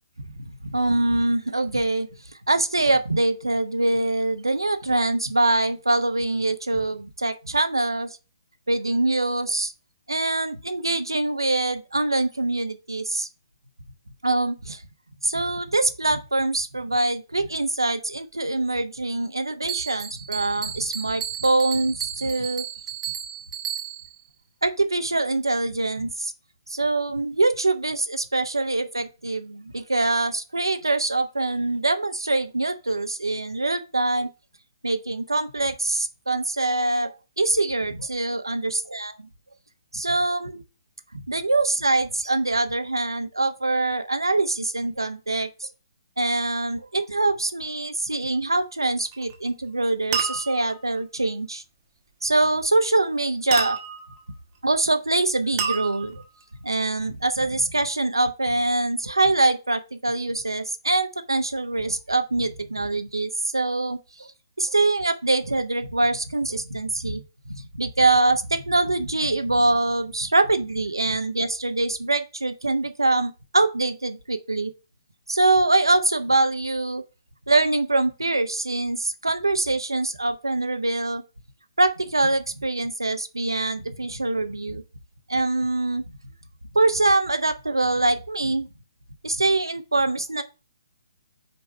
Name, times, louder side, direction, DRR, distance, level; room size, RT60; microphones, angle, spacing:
voice 1, 0.7-2.1 2.5-8.2 8.7-9.7 10.1-13.3 14.2-14.8 15.2-22.6 24.6-26.3 26.7-34.3 34.8-38.6 38.9-39.3 39.9-40.6 41.3-45.7 46.2-51.6 52.2-53.8 54.6-56.2 56.6-64.3 64.6-67.2 67.5-74.7 75.3-77.0 77.5-81.2 81.8-84.8 85.3-86.0 86.7-88.7 89.2-90.4, right 2 dB, 75° right, 0.9 m, -24 dB
Bell, 19.7-24.2, right 10 dB, 10° right, 0.9 m, -33 dB
sound 1, 49.1-49.5 50.1-50.8 53.5-54.2 55.6-56.4, right 7 dB, 30° right, 1.2 m, -29 dB
5.3 x 4.6 x 5.6 m
figure-of-eight pair, 130°, 2 cm